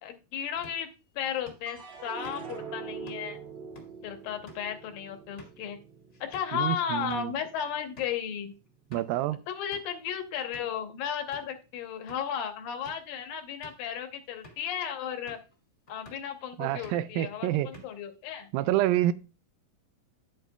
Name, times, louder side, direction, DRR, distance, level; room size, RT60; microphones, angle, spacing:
voice 1, 0.0-3.4 4.0-5.8 6.2-8.5 8.9-9.0 9.5-15.4 15.9-18.5, left 8 dB, 80° left, 2.7 m, -34 dB
sound 1, 0.5-6.6 6.9-7.3 7.6-7.7 8.0-8.2 8.7-9.2 9.7-10.0 10.5-10.8 11.3-11.6 12.1-12.2 12.7-13.1 13.5-13.9 14.4-14.7 15.3-15.6 15.9-16.3 16.6-17.1 17.5-18.1, left 1 dB, 30° left, 1.4 m, -53 dB
sound 2, 1.7-8.1 8.5-9.2, right 6 dB, 55° right, 3.8 m, -44 dB
voice 2, 6.5-7.3 8.9-9.4 16.6-17.7 18.5-19.1, right 14 dB, 85° right, 2.3 m, -27 dB
9.1 x 9.0 x 2.3 m
omnidirectional pair, 4.1 m